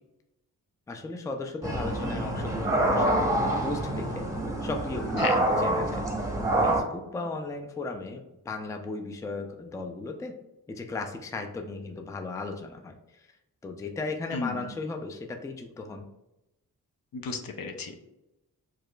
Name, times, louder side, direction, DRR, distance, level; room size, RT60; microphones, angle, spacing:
voice 1, 0.9-4.2 4.6-6.3 6.6-10.3 10.7-13.2 13.6-16.1, left 3 dB, 10° left, 4 dB, 0.3 m, -36 dB
sound 1, 1.6-6.8, right 1 dB, 10° right, 0.7 m, -26 dB
voice 2, 14.3-14.7 17.1-18.0, left 5 dB, 65° left, 5 dB, 0.5 m, -33 dB
4.7 x 2.4 x 2.2 m, 0.93 s
cardioid pair, 55°, 38 cm